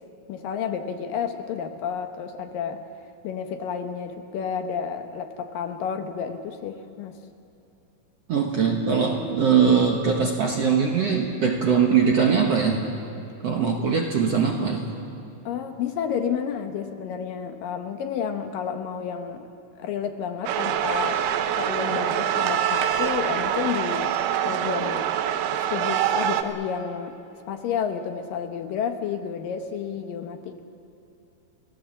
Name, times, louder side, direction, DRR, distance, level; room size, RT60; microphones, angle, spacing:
voice 1, 0.3-2.8 3.2-7.2 13.9-14.0 15.5-19.5 19.8-21.2 21.6-24.1 24.4-25.1 25.5-27.2 27.5-30.6, left 7 dB, 70° left, 7 dB, 2.5 m, -30 dB
voice 2, 8.3-12.8 13.4-14.8, right 6 dB, 60° right, 1 dB, 1.7 m, -21 dB
sound 1, 20.5-26.4, right 10 dB, 90° right, 3.0 m, -25 dB
29.5 x 17.5 x 7.4 m, 2.8 s
omnidirectional pair, 4.5 m